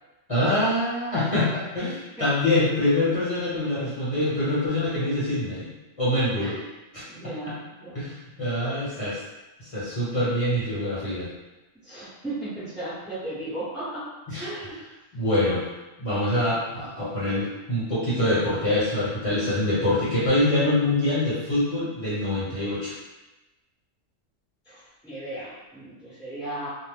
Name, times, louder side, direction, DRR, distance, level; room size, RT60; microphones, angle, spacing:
voice 1, 0.3-5.7 6.0-6.5 6.9-7.0 7.9-9.2 9.6-11.3 14.3-14.4 15.1-15.6 16.0-22.9, left 1 dB, 25° left, -12 dB, 1.1 m, -25 dB
voice 2, 7.1-8.0 11.8-14.1 14.4-14.8 24.6-26.7, right 1 dB, ahead, -12 dB, 0.9 m, -36 dB
2.5 x 2.1 x 3.3 m, 1.1 s
omnidirectional pair, 1.3 m